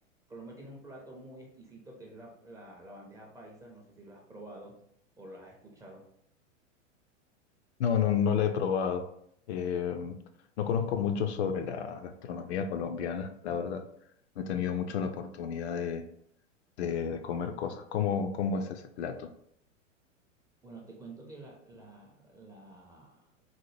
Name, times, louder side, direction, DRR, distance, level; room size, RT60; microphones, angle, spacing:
voice 1, 0.3-4.8 5.2-6.0 20.6-23.4, right 2 dB, 10° right, -2 dB, 0.4 m, -49 dB
voice 2, 7.8-9.0 9.5-10.2 10.6-13.8 14.4-16.1 16.8-19.3, left 7 dB, 60° left, 7 dB, 0.5 m, -31 dB
4.0 x 2.1 x 3.2 m, 0.70 s
hypercardioid pair, 105°, 38 cm